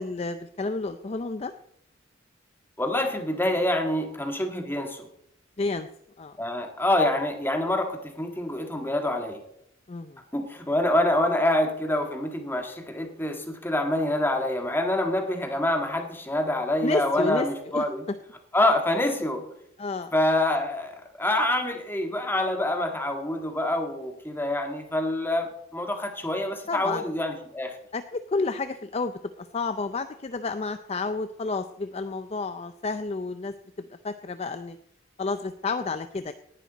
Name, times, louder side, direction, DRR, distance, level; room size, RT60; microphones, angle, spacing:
voice 1, 0.0-1.5 5.6-5.9 6.2-6.3 9.9-10.2 16.8-17.5 17.7-17.8 19.8-20.1 26.7-27.0 27.9-33.5 34.0-34.8 35.2-36.3, left 3 dB, 30° left, 10 dB, 0.5 m, -30 dB
voice 2, 2.8-5.1 6.4-9.4 10.3-18.0 18.5-19.4 20.1-27.8, left 1 dB, 10° left, 4 dB, 1.7 m, -26 dB
18.5 x 11.0 x 4.0 m, 0.76 s
head